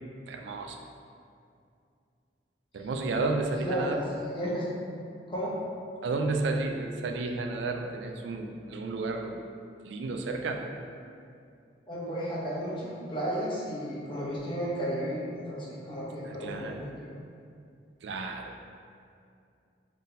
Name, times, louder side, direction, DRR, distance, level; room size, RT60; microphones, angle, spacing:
voice 1, 0.3-0.8 2.7-4.0 6.0-9.4 9.8-10.6 16.2-16.8 18.0-18.5, right 3 dB, 75° right, 3 dB, 0.3 m, -32 dB
voice 2, 3.6-4.7 5.3-5.6 11.9-17.1, equal, 25° left, -7 dB, 0.8 m, -33 dB
3.9 x 3.6 x 2.7 m, 2.4 s
head